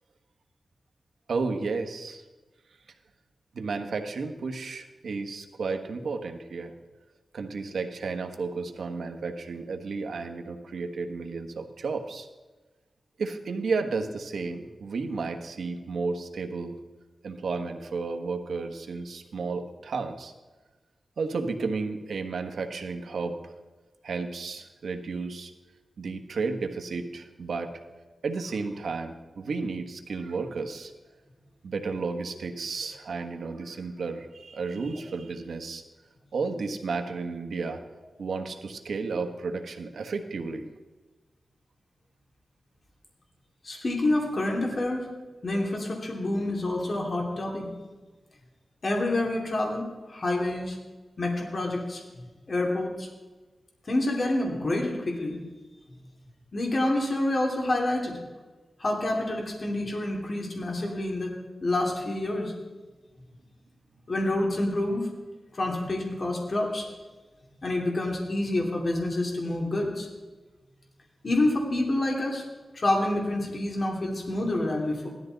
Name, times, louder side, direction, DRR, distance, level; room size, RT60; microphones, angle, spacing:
voice 1, 1.3-2.2 3.5-6.7 7.3-12.3 13.2-16.8 17.2-20.3 21.2-23.5 24.0-25.5 26.0-27.7 28.2-30.9 31.6-35.8 36.3-37.8 38.2-40.7, right 4 dB, 85° right, 5 dB, 1.3 m, -32 dB
voice 2, 43.6-45.1 45.4-47.7 48.8-50.8 51.2-53.1 53.9-55.4 56.5-58.2 58.8-61.3 61.6-62.5 64.1-65.1 65.5-66.9 67.6-70.1 71.2-72.4 72.7-75.1, left 1 dB, 45° left, 0 dB, 2.6 m, -28 dB
16.5 x 12.5 x 4.0 m, 1.2 s
wide cardioid pair, 120°, 0 cm